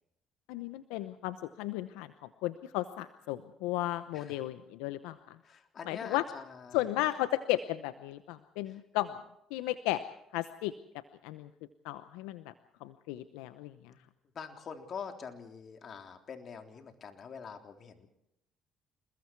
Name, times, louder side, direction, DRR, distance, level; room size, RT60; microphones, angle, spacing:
voice 1, 0.5-2.1 2.4-5.2 5.9-6.2 6.7-9.1 9.5-10.0 10.3-10.7 11.2-11.5 11.8-12.4 12.8-13.7, left 15 dB, 85° left, 12 dB, 0.8 m, -34 dB
voice 2, 5.4-6.9 8.7-8.8 13.9-14.0 14.3-18.1, left 6 dB, 50° left, 5 dB, 3.5 m, -45 dB
27.5 x 21.5 x 4.7 m, 0.82 s
supercardioid pair, 65°, 0 cm